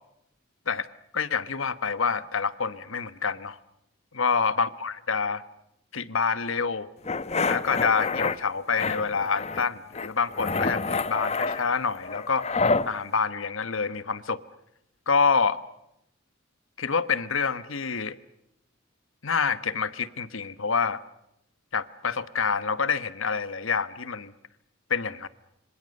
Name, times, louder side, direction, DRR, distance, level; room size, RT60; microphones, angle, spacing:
voice 1, 1.1-3.6 4.1-5.4 5.9-6.9 7.5-12.5 12.8-14.4 15.1-15.6 16.8-18.2 19.2-21.0 21.7-24.3 24.9-25.3, left 5 dB, 80° left, 15 dB, 1.3 m, -27 dB
sound 1, 7.0-8.4 8.7-9.7 9.9-12.9, left 4 dB, 30° left, 0.9 m, -28 dB
27.0 x 26.0 x 6.6 m, 0.80 s
head